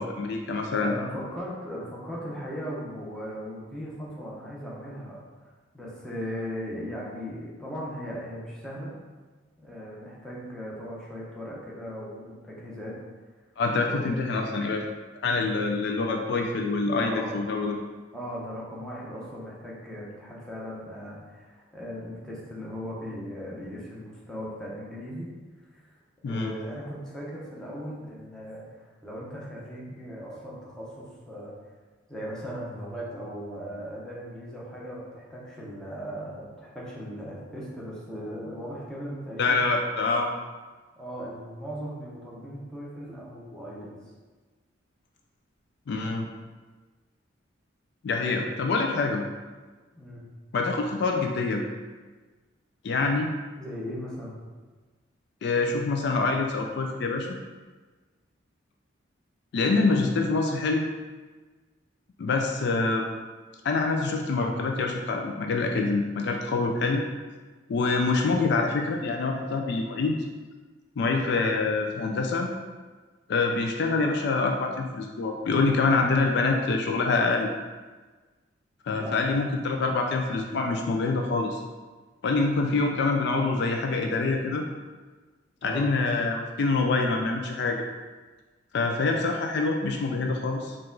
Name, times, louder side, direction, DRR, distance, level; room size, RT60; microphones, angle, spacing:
voice 1, 0.0-0.9 13.6-14.8 15.2-17.8 26.2-26.5 39.4-40.3 45.9-46.3 48.0-49.2 50.5-51.6 52.8-53.3 55.4-57.4 59.5-60.9 62.2-63.1 63.6-67.0 67.7-70.2 71.0-72.5 73.3-77.5 78.8-81.6 82.2-84.7 85.6-87.8 88.7-90.8, left 3 dB, 60° left, 2 dB, 0.3 m, -25 dB
voice 2, 0.8-8.9 9.6-13.0 13.8-14.2 17.0-17.3 18.1-25.3 25.7-26.0 26.2-31.5 32.1-39.6 41.0-43.9 48.2-48.4 49.9-50.2 53.6-54.4 78.9-79.3 85.6-85.9, equal, 5° left, -6 dB, 0.8 m, -38 dB
4.7 x 2.4 x 3.8 m, 1.3 s
head